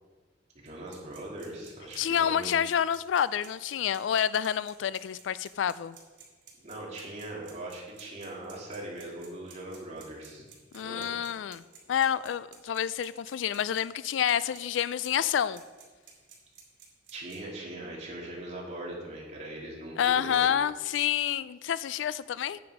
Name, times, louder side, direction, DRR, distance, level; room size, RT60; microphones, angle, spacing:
voice 1, 0.6-2.5 6.6-10.4 10.8-11.1 17.1-20.5, right 1 dB, 40° right, -4 dB, 2.7 m, -40 dB
sound 1, 0.7-17.4, right 8 dB, 75° right, 3.2 m, -53 dB
voice 2, 2.0-6.0 10.7-11.6 11.9-15.6 20.0-22.6, left 9 dB, 85° left, 18 dB, 0.3 m, -28 dB
9.6 x 8.1 x 4.8 m, 1.4 s
head